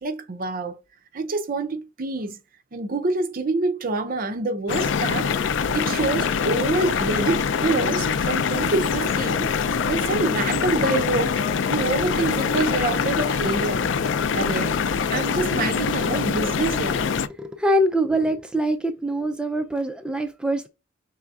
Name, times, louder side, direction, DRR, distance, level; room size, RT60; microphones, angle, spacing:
voice 1, 0.0-0.8 1.1-2.4 2.7-5.3 5.7-9.5 9.9-11.4 11.7-13.9 14.3-14.8 15.1-17.0, right 3 dB, 50° right, 0.6 m, -26 dB
sound 1, 4.7-17.3, left 6 dB, 80° left, 0.4 m, -24 dB
voice 2, 17.4-20.7, right 1 dB, 5° right, 0.3 m, -24 dB
5.6 x 3.4 x 2.4 m
head